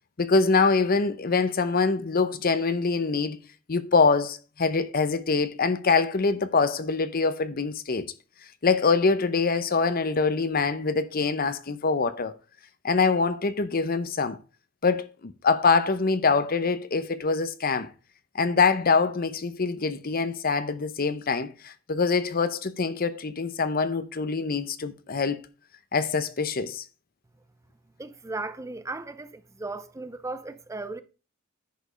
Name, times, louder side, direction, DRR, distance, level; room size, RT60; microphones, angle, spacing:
voice 1, 0.2-3.4 3.7-8.1 8.6-12.3 12.8-14.4 14.8-17.9 18.3-25.4 25.9-26.8, left 4 dB, 45° left, 0.7 m, -24 dB
voice 2, 28.0-31.0, right 3 dB, 15° right, 0.5 m, -36 dB
10.5 x 5.3 x 5.1 m
head